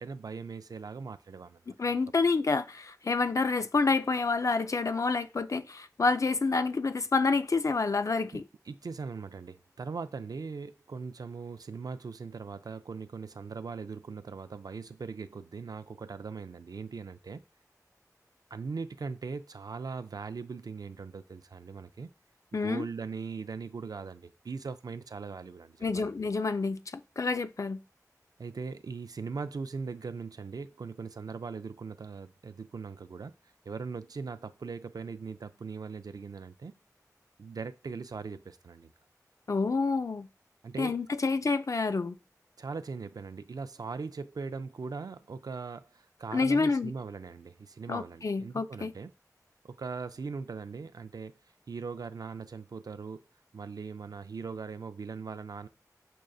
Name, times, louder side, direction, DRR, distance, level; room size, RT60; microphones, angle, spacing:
voice 1, 0.0-2.0 8.3-17.4 18.5-22.1 22.5-26.1 28.4-33.3 33.7-36.7 37.4-38.9 40.6-41.0 42.6-49.1 49.6-51.4 51.7-53.2 53.5-55.7, right 4 dB, 75° right, 0.3 m, -40 dB
voice 2, 1.8-8.4 22.5-22.8 25.8-27.8 39.5-40.3 40.8-42.2 46.3-46.9 47.9-48.9, left 4 dB, 55° left, 0.4 m, -28 dB
6.2 x 2.6 x 2.3 m
wide cardioid pair, 55°, 6 cm